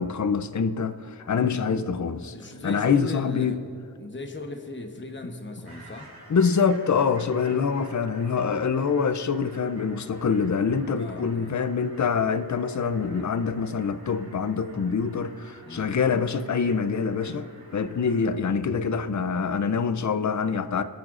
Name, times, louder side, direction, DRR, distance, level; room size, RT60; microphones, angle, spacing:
voice 1, 0.0-2.3 2.6-3.6 6.3-20.8, left 5 dB, 50° left, 0.5 m, -25 dB
voice 2, 1.3-1.8 2.3-3.6 4.0-6.1 11.0-11.6 15.6-15.9, left 2 dB, 30° left, 0.9 m, -38 dB
sound 1, 5.7-18.4, right 2 dB, 80° right, 2.2 m, -50 dB
26.0 x 9.5 x 2.5 m
wide cardioid pair, 50°, 37 cm